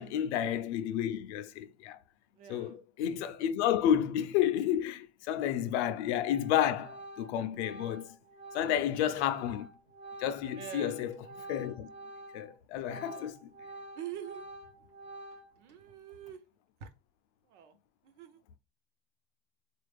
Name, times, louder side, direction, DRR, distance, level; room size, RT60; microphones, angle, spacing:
voice 1, 0.0-2.0 2.5-8.2 8.5-9.7 10.2-11.9 12.3-13.5, left 10 dB, 65° left, 0.5 m, -31 dB
voice 2, 2.4-2.8 10.6-11.0 13.1-13.3 14.0-14.4 15.6-16.4 16.8-16.9 17.5-17.7 18.2-18.4, right 10 dB, 70° right, 0.8 m, -45 dB
Organ, 5.6-5.9 6.2-12.5 12.8-15.7, right 1 dB, 20° right, 0.4 m, -48 dB
4.0 x 2.4 x 3.3 m
supercardioid pair, 175°, 37 cm